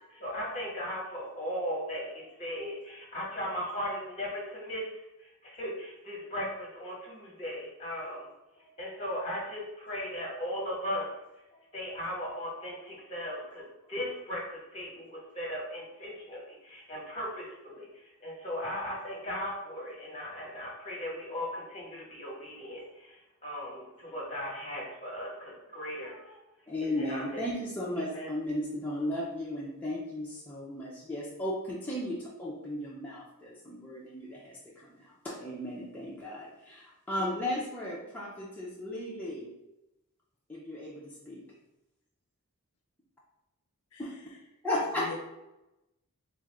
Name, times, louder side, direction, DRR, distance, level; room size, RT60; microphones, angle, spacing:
voice 1, 0.2-8.3 8.6-11.1 11.5-26.4 26.8-27.4 28.0-28.3, equal, 30° left, -3 dB, 1.1 m, -37 dB
voice 2, 26.7-39.5 40.5-41.4 44.0-44.1 44.6-45.1, left 1 dB, 5° left, -6 dB, 0.5 m, -35 dB
voice 3, 43.9-44.4 44.9-45.2, left 4 dB, 70° left, 3 dB, 0.4 m, -44 dB
3.6 x 2.4 x 3.2 m, 0.93 s
head